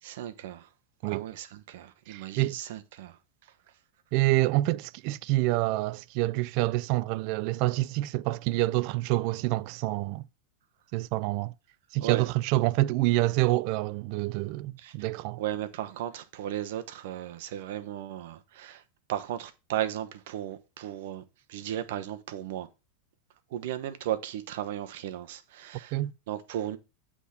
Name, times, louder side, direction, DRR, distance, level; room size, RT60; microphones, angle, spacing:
voice 1, 0.0-0.7 1.0-3.2 12.0-12.3 14.8-14.9 15.4-18.8 19.1-21.2 21.5-22.7 23.5-26.0 26.3-26.8, right 12 dB, 70° right, 0.9 m, -35 dB
voice 2, 2.1-2.6 4.1-10.3 10.9-11.5 11.9-15.4 25.9-26.1, right 18 dB, 50° right, 0.3 m, -27 dB
8.1 x 3.6 x 5.7 m
supercardioid pair, 130°, 0 cm